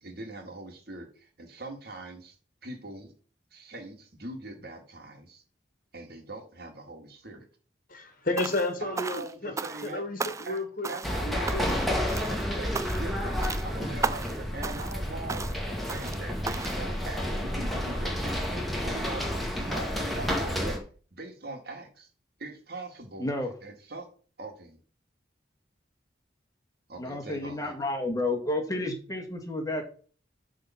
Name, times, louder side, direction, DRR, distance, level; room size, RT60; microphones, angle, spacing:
voice 1, 0.0-2.4 2.6-3.1 3.5-5.4 5.9-7.5 8.8-10.0 10.5-10.6 10.9-11.6 11.9-20.8 21.1-22.1 22.4-23.3 23.6-24.1 24.4-24.8 26.9-27.7, right 2 dB, 55° right, 3 dB, 2.0 m, -42 dB
voice 2, 7.9-9.5 9.8-10.9 11.2-11.9, left 2 dB, 50° left, 6 dB, 1.7 m, -32 dB
sound 1, 8.4-8.7 9.0-9.9 10.2-10.6 10.8-11.2 11.5-11.8 12.1-12.4 12.7-13.1 13.4-13.7 14.0-14.4 14.6-15.0 15.3-15.6 15.9-16.2 16.5-16.8, right 4 dB, 15° right, 0.3 m, -34 dB
sound 2, 11.0-20.8, equal, ahead, 1.9 m, -30 dB
voice 3, 23.2-23.5 27.0-29.8, left 2 dB, 20° left, 3 dB, 1.7 m, -31 dB
11.5 x 3.8 x 5.7 m, 0.41 s
head